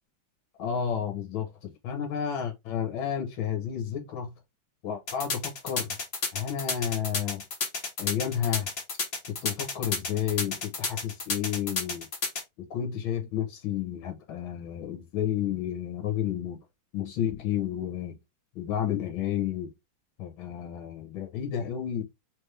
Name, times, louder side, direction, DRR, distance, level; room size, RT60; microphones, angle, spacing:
voice 1, 0.6-4.3 4.8-6.0 6.3-7.4 8.0-8.7 9.3-12.1 12.6-16.6 16.9-18.2 18.6-19.7 20.2-22.0, left 9 dB, 85° left, 2.0 m, -31 dB
sound 1, 5.1-12.4, left 4 dB, 40° left, 1.1 m, -31 dB
4.1 x 3.4 x 3.2 m
omnidirectional pair, 2.2 m